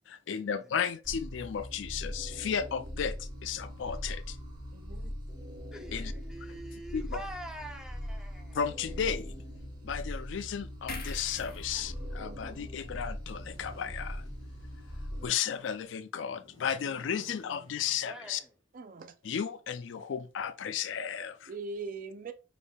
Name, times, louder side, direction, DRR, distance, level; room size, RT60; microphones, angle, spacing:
voice 1, 0.1-4.4 5.9-6.1 6.5-6.6 6.9-7.2 8.5-9.3 9.8-14.3 15.2-18.4 19.2-21.5, left 7 dB, 75° left, 0.4 m, -34 dB
sound 1, 1.0-15.3, equal, 25° right, 1.0 m, -41 dB
voice 2, 4.7-5.1 12.2-12.4 18.7-19.1 21.5-22.3, right 3 dB, 45° right, 0.5 m, -41 dB
voice 3, 5.7-8.6 11.4-11.6 18.0-18.5, right 1 dB, 5° right, 0.8 m, -45 dB
sound 2, 10.9-14.3 14.6-14.8, left 3 dB, 55° left, 1.3 m, -47 dB
sound 3, 13.2-14.9 16.2-18.4, equal, 25° left, 1.8 m, -55 dB
6.2 x 3.5 x 2.3 m
head